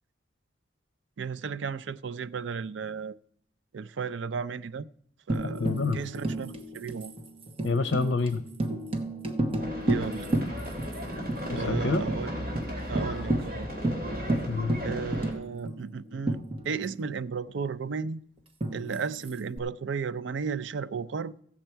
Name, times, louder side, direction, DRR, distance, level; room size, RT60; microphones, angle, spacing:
voice 1, 1.2-3.2 3.7-4.9 5.3-7.1 9.9-10.3 11.5-12.5 12.9-13.7 14.8-18.2 18.7-21.4, right 5 dB, 75° right, 0.4 m, -34 dB
Tambourine, 5.3-11.0 11.3-11.4 11.7-12.2 12.5-12.7 13.0-17.1 18.6-19.6, right 1 dB, 30° right, 1.1 m, -32 dB
voice 2, 5.6-6.0 7.6-8.4 11.5-12.0 14.5-14.8, left 3 dB, 70° left, 0.6 m, -27 dB
sound 1, 9.6-15.3, equal, 45° right, 3.5 m, -35 dB
16.0 x 7.4 x 4.5 m
head